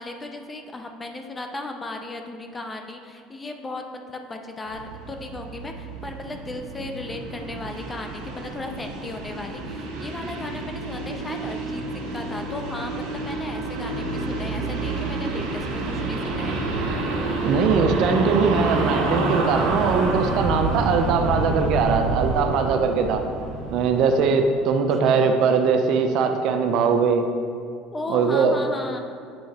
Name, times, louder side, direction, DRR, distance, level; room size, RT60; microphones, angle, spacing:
voice 1, 0.0-16.6 25.0-25.4 27.9-29.0, left 2 dB, 15° left, 4 dB, 0.5 m, -36 dB
sound 1, 4.7-24.2, right 2 dB, 90° right, 1.4 m, -28 dB
voice 2, 17.4-23.2 23.7-27.3 28.1-28.6, right 5 dB, 55° right, 6 dB, 0.5 m, -21 dB
7.7 x 3.7 x 4.1 m, 2.3 s
cardioid pair, 150°, 0 cm